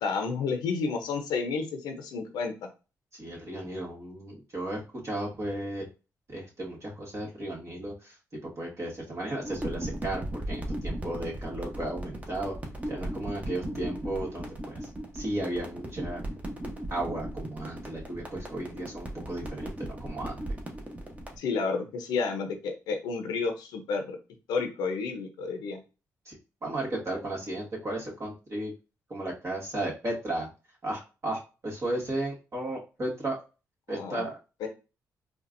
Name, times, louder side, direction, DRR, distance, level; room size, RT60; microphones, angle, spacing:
voice 1, 0.0-2.5 21.4-24.2 24.5-25.8 33.9-34.3 34.6-34.7, left 4 dB, 90° left, 5 dB, 0.7 m, -31 dB
voice 2, 3.1-5.9 6.3-8.1 8.6-12.5 12.9-14.9 15.1-16.2 16.9-20.4 26.2-28.7 29.1-30.5 30.8-33.4 33.9-34.4, right 1 dB, 45° right, -3 dB, 1.8 m, -34 dB
sound 1, 9.4-21.4, right 1 dB, 20° right, 1.1 m, -37 dB
4.3 x 2.4 x 2.6 m, 0.31 s
cardioid pair, 65°, 7 cm